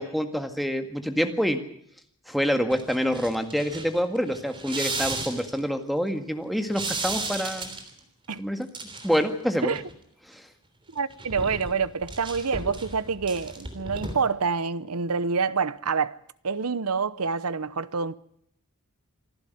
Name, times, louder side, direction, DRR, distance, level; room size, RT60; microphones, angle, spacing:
voice 1, 0.0-1.6 2.3-7.7 8.4-8.7 9.0-9.8 10.3-10.4, equal, ahead, 1.8 m, -26 dB
sound 1, 2.7-5.6 6.7-8.0 8.6-9.3 9.6-9.9 11.0-14.1, right 3 dB, 25° right, 3.3 m, -34 dB
voice 2, 10.9-16.2 16.4-18.2, right 5 dB, 80° right, 0.9 m, -27 dB
26.5 x 12.0 x 9.4 m
head